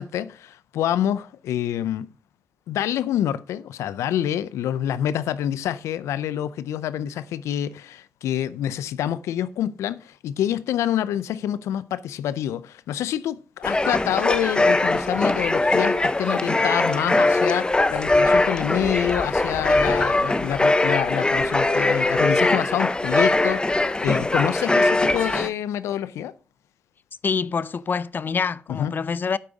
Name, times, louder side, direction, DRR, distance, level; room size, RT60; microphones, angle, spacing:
voice 1, 0.0-2.1 2.7-26.3 28.7-28.9, left 10 dB, 90° left, 0.5 m, -27 dB
sound 1, 13.6-25.5, left 2 dB, 20° left, 0.8 m, -21 dB
voice 2, 27.2-29.4, left 5 dB, 45° left, 0.5 m, -26 dB
12.0 x 4.8 x 4.0 m
cardioid pair, 70°, 5 cm